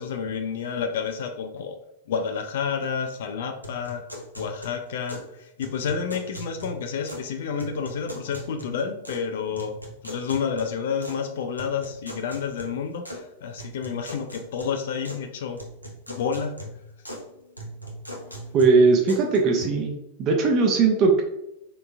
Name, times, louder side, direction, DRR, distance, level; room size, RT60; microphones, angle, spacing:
voice 1, 0.0-1.8 2.1-4.1 4.4-9.8 10.0-15.6 16.1-16.6, left 6 dB, 60° left, 6 dB, 0.3 m, -30 dB
sound 1, 3.6-5.3 5.6-7.3 7.6-9.3 9.6-11.2 11.6-13.2 13.6-15.3 15.6-17.3 17.6-19.6, equal, 90° right, 0.6 m, -40 dB
voice 2, 18.5-19.9 20.2-21.2, right 4 dB, 35° right, 2 dB, 0.6 m, -19 dB
3.9 x 3.5 x 2.2 m, 0.86 s
figure-of-eight pair, 90°, 0 cm